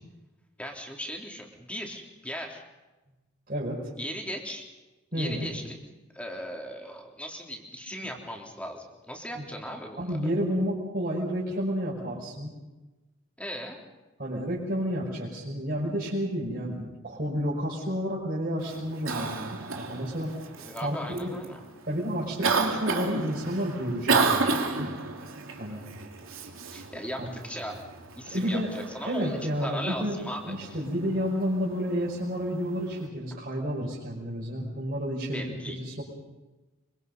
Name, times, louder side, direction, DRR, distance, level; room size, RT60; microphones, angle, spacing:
voice 1, 0.6-2.6 4.0-4.7 5.1-5.8 6.1-10.2 13.4-13.8 20.6-21.6 26.7-27.8 28.1-30.8 35.3-35.8, equal, 5° left, 1 dB, 3.5 m, -38 dB
voice 2, 3.5-3.9 5.1-5.5 9.3-9.4 10.0-12.5 14.2-19.5 19.8-20.3 20.8-21.4 21.9-24.5 25.6-25.8 27.2-27.3 28.3-28.7 29.0-36.0, equal, 45° right, -6 dB, 5.7 m, -30 dB
Cough, 18.6-33.1, right 4 dB, 80° right, 3.1 m, -33 dB
25.5 x 24.0 x 5.5 m, 1.1 s
head